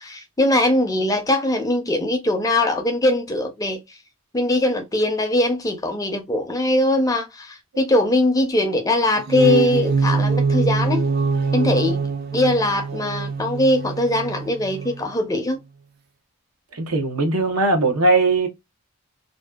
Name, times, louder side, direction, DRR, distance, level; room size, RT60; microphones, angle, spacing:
voice 1, 0.0-3.8 4.3-11.1 11.5-12.0 12.3-15.6, left 1 dB, 15° left, 0.4 m, -21 dB
sound 1, 9.2-15.1, right 4 dB, 45° right, 0.3 m, -23 dB
voice 2, 16.7-18.5, right 2 dB, 90° right, 0.8 m, -19 dB
2.6 x 2.2 x 2.2 m
head